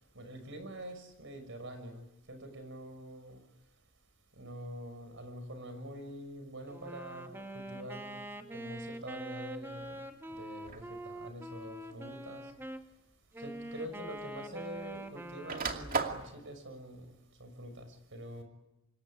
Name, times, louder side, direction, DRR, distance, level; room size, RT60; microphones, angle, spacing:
voice 1, 0.1-3.4 4.3-10.0 10.3-12.5 13.4-18.4, right 1 dB, 65° right, 6.1 m, -46 dB
Wind instrument woodwind instrument, 6.7-12.8 13.3-16.0, right 1 dB, 10° right, 2.0 m, -44 dB
sound 1, 10.6-11.0 12.0-12.1 13.5-13.6 13.8-14.9 15.2-16.3, right 4 dB, 45° right, 2.5 m, -35 dB
26.0 x 22.0 x 10.0 m
head